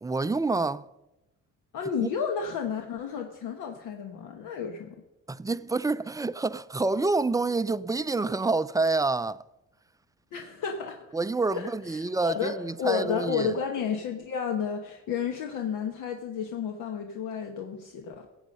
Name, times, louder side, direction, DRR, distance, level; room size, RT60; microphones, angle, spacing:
voice 1, 0.0-0.9 2.0-2.1 5.3-9.4 11.1-13.5, right 3 dB, 10° right, 0.3 m, -27 dB
voice 2, 1.7-5.0 10.3-11.1 11.5-12.5 12.8-18.3, left 7 dB, 85° left, 1.1 m, -32 dB
16.0 x 8.2 x 5.3 m
cardioid pair, 90°, 30 cm